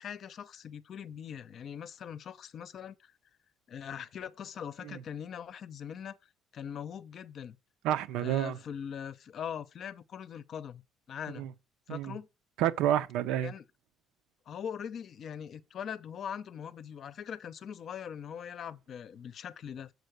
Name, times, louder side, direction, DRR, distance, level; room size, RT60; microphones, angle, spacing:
voice 1, 0.0-3.1 3.7-6.2 6.5-7.6 8.2-10.8 11.1-11.5 11.9-12.3 13.4-13.6 14.5-19.9, left 8 dB, 45° left, 0.6 m, -41 dB
voice 2, 7.8-8.6 11.4-11.5 11.9-12.1 12.6-13.5, right 11 dB, 80° right, 0.7 m, -29 dB
6.5 x 4.6 x 6.6 m
cardioid pair, 130°, 0 cm